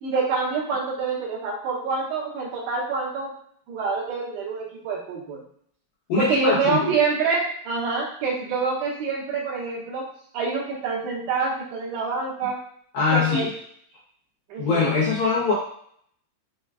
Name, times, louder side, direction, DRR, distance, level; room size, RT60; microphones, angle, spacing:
voice 1, 0.0-3.3 3.7-5.4 6.2-10.1 10.3-12.6 13.1-13.5 14.5-14.9, right 4 dB, 90° right, -5 dB, 3.2 m, -26 dB
voice 2, 6.1-6.9 12.9-13.5 14.6-15.5, left 4 dB, 80° left, -9 dB, 1.8 m, -22 dB
6.9 x 2.4 x 2.3 m, 0.64 s
omnidirectional pair, 4.8 m